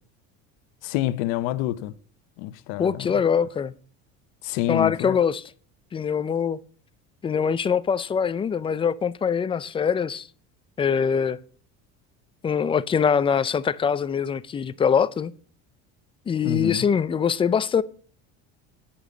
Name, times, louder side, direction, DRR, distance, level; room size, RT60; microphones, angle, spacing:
voice 1, 0.8-1.9 2.4-3.1 4.4-5.2 16.4-16.9, left 14 dB, 75° left, 1.0 m, -27 dB
voice 2, 2.8-3.7 4.7-5.4 5.9-6.6 7.2-10.3 10.8-11.4 12.4-15.3 16.3-17.8, left 7 dB, 15° left, 0.4 m, -23 dB
11.0 x 10.5 x 3.9 m
cardioid pair, 155°, 33 cm